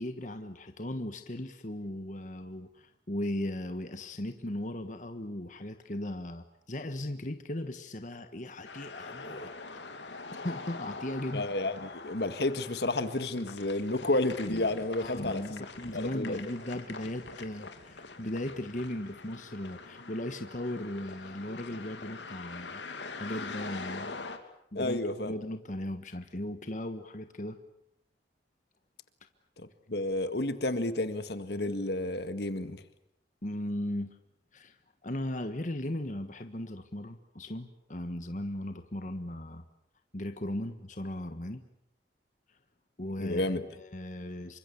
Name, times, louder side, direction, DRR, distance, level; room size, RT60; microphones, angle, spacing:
voice 1, 0.0-9.5 9.9-10.2 10.4-11.5 15.0-22.8 23.2-24.2 24.7-27.6 33.4-34.2 34.5-34.8 35.0-39.6 40.1-41.6 43.0-44.6, left 1 dB, 45° left, 8 dB, 1.4 m, -37 dB
sound 1, 8.6-24.4, left 3 dB, 85° left, 2.9 m, -44 dB
voice 2, 11.3-15.4 15.9-16.4 24.7-25.3 29.6-32.8 43.2-43.6, left 2 dB, 65° left, 10 dB, 1.8 m, -31 dB
28.0 x 25.0 x 7.1 m, 0.76 s
head